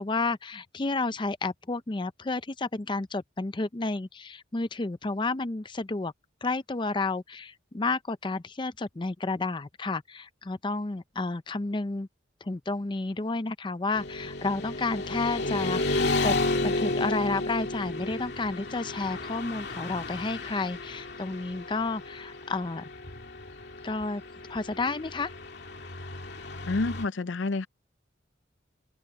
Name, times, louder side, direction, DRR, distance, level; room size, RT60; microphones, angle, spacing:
voice 1, 0.0-6.1 6.4-12.1 12.4-22.8 23.8-24.2 24.5-25.3, left 3 dB, 25° left, 0.5 m, -31 dB
Motorcycle / Traffic noise roadway noise, 13.9-27.1, left 2 dB, 60° left, 2.5 m, -32 dB
voice 2, 26.7-27.7, left 3 dB, 75° left, 0.6 m, -28 dB
open air
head